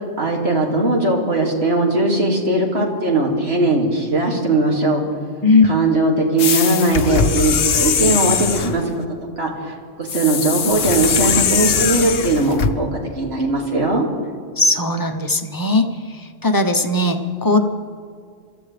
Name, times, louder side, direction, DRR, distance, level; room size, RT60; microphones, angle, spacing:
voice 1, 0.2-5.0 5.6-8.8 9.4-12.9 13.1-14.1, right 2 dB, 65° right, -1 dB, 2.7 m, -19 dB
sound 1, 6.4-8.8 10.1-12.7, left 6 dB, 60° left, 1.0 m, -20 dB
voice 2, 14.6-15.9 16.4-17.6, left 2 dB, 20° left, 5 dB, 0.9 m, -17 dB
25.5 x 14.0 x 3.4 m, 2.2 s
omnidirectional pair, 1.2 m